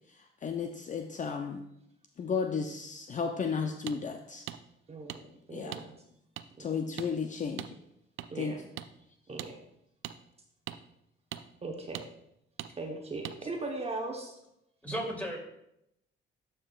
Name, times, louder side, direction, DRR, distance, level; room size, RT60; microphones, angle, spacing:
voice 1, 0.1-1.6 2.2-4.4 5.5-5.8 6.6-7.8 8.3-8.6, left 5 dB, 40° left, 5 dB, 0.5 m, -34 dB
sound 1, 3.9-4.0 4.5-4.6 5.1-5.2 5.7-5.8 6.4-6.5 7.0-7.1 7.6-7.7 8.2-8.3 8.8-8.9 9.4-9.5 10.0-10.2 10.7-10.8 11.3-11.4 11.9-12.1 12.6-12.7 13.2-13.4, right 12 dB, 90° right, 0.4 m, -40 dB
voice 2, 4.9-5.9 6.6-6.7 8.3-8.6 9.3-9.6 11.6-12.0 12.8-14.3, right 2 dB, 30° right, 2 dB, 1.0 m, -38 dB
voice 3, 14.8-15.4, equal, 5° left, -2 dB, 2.7 m, -35 dB
12.0 x 5.6 x 2.4 m, 0.80 s
cardioid pair, 90°, 20 cm